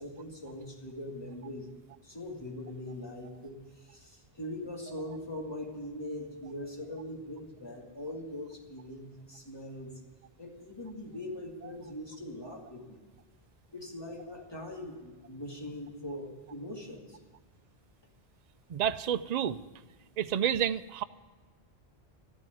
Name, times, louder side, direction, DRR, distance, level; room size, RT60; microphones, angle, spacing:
voice 1, 0.0-1.7 2.0-10.0 10.4-13.0 13.7-17.2, left 1 dB, 25° left, 0 dB, 2.2 m, -41 dB
voice 2, 18.7-19.6 20.2-21.0, right 10 dB, 50° right, 12 dB, 0.5 m, -29 dB
13.0 x 8.9 x 9.2 m, 1.4 s
omnidirectional pair, 1.1 m